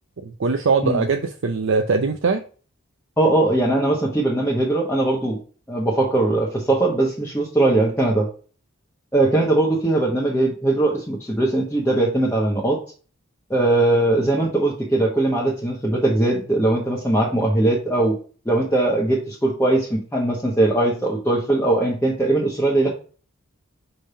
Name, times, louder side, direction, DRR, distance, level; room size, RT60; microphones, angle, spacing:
voice 1, 0.2-2.4, right 4 dB, 60° right, 5 dB, 0.5 m, -21 dB
voice 2, 3.2-5.4 5.7-8.3 9.1-12.8 13.5-18.2 18.4-22.9, right 2 dB, 10° left, -5 dB, 1.2 m, -20 dB
5.4 x 3.4 x 5.5 m, 0.39 s
head